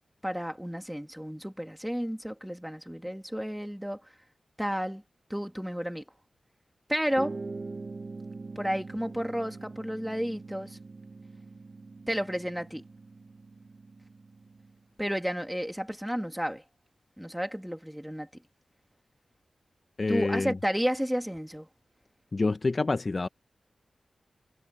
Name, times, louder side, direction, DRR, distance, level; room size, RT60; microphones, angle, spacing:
voice 1, 0.2-4.0 4.6-5.0 5.3-6.0 6.9-7.4 8.6-10.8 12.1-12.8 15.0-16.6 17.2-18.3 20.1-21.7, equal, 5° right, 2.3 m, -32 dB
sound 1, 7.1-14.8, right 3 dB, 45° right, 1.4 m, -43 dB
voice 2, 20.0-20.6 22.3-23.3, left 3 dB, 40° left, 0.8 m, -27 dB
wide cardioid pair, 100°, 0 cm